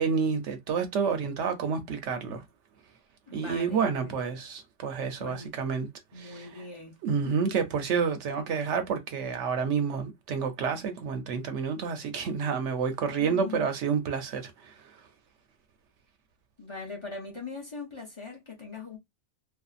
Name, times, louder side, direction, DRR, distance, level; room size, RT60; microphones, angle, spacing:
voice 1, 0.0-2.4 3.3-5.9 6.2-6.6 7.0-14.7, right 6 dB, 80° right, 1.0 m, -29 dB
voice 2, 3.3-4.2 5.2-5.5 6.1-7.0 7.2-7.3 13.2-13.7 16.6-19.0, left 4 dB, 30° left, 0.6 m, -41 dB
2.6 x 2.4 x 2.4 m
omnidirectional pair, 1.2 m